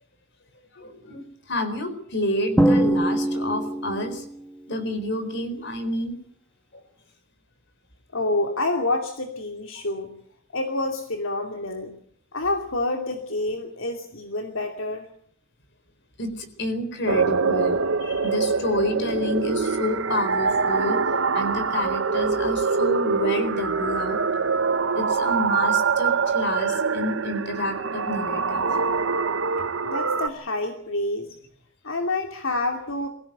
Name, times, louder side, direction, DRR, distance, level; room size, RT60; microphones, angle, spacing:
voice 1, 0.7-4.2 4.7-6.2 6.7-6.8 9.8-9.9 16.2-24.2 24.9-28.9, left 1 dB, 60° left, 9 dB, 4.3 m, -29 dB
Drum, 2.6-4.3, right 1 dB, 5° left, 1.6 m, -22 dB
voice 2, 8.1-10.1 10.5-11.9 12.3-15.1 29.8-31.4 31.8-33.1, left 2 dB, 75° left, 3 dB, 2.7 m, -28 dB
sound 1, 17.1-30.3, right 5 dB, 65° right, 1.0 m, -24 dB
23.5 x 16.0 x 9.2 m, 0.67 s
head